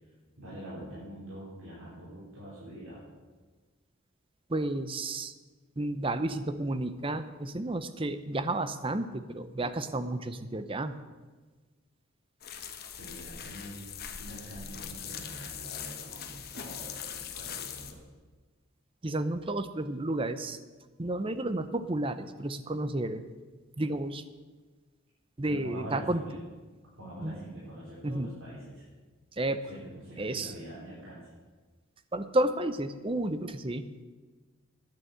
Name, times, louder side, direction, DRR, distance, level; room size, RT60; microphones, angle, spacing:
voice 1, 0.4-3.0 13.0-13.9 14.1-18.0 25.5-26.4 27.0-28.8 29.7-31.3, equal, 85° right, -9 dB, 4.4 m, -44 dB
voice 2, 4.5-5.3 5.8-10.9 19.0-20.6 21.0-23.3 23.8-24.2 25.4-26.2 27.2-27.3 28.0-28.3 29.4-29.6 30.2-30.5 32.1-33.8, right 1 dB, 25° right, 11 dB, 0.6 m, -31 dB
sound 1, 12.4-17.9, left 8 dB, 45° left, 1.1 m, -41 dB
9.9 x 9.9 x 7.9 m, 1.3 s
head